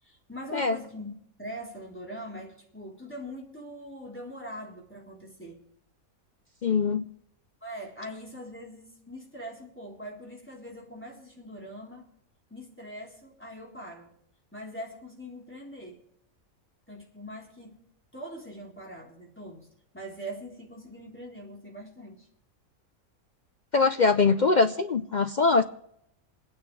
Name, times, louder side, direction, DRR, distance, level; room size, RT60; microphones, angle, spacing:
voice 1, 0.0-5.6 7.6-12.1 12.5-14.1 14.5-16.1 16.9-17.8 18.1-19.7 19.9-22.3, equal, 10° left, -2 dB, 3.7 m, -42 dB
voice 2, 6.6-7.0 23.7-25.6, left 4 dB, 50° left, 9 dB, 0.5 m, -22 dB
28.0 x 9.5 x 3.3 m, 0.75 s
omnidirectional pair, 1.4 m